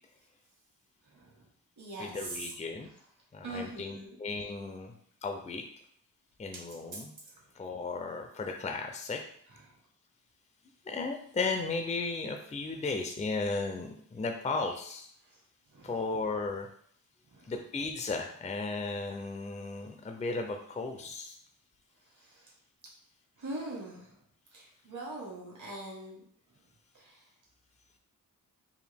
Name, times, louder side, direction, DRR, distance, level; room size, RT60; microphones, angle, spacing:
voice 1, 1.0-1.5 1.8-2.5 2.8-2.9 3.4-4.2 6.9-7.4 9.5-9.8 15.2-15.4 15.7-16.1 17.3-17.5 22.0-22.5 23.4-24.2 24.5-26.2 26.9-27.2, right 2 dB, 60° right, -4 dB, 1.5 m, -43 dB
voice 2, 2.0-2.9 3.3-4.9 5.2-5.6 6.4-7.1 7.6-9.2 10.9-15.1 15.8-16.7 17.5-21.4, left 3 dB, 20° left, 4 dB, 0.4 m, -35 dB
4.8 x 2.4 x 3.4 m, 0.62 s
wide cardioid pair, 120°, 34 cm